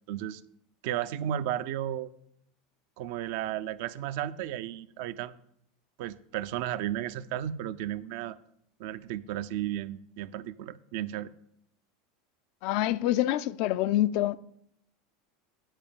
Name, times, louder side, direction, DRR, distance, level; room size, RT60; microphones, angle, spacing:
voice 1, 0.1-0.4 0.8-2.1 3.0-5.3 6.0-8.4 8.8-11.3, right 11 dB, 60° right, 0.5 m, -34 dB
voice 2, 12.6-14.4, left 14 dB, 55° left, 0.4 m, -26 dB
9.0 x 5.2 x 6.7 m
hypercardioid pair, 80°, 0 cm